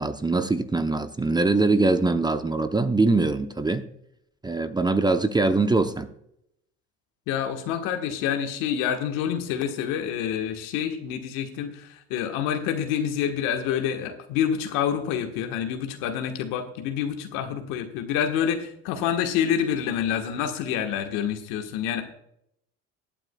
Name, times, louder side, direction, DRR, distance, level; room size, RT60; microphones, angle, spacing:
voice 1, 0.0-3.9 4.4-6.1, right 3 dB, 15° right, 9 dB, 0.7 m, -23 dB
voice 2, 7.3-22.0, left 9 dB, 75° left, 5 dB, 1.4 m, -27 dB
19.5 x 9.0 x 2.3 m, 0.76 s
supercardioid pair, 75°, 32 cm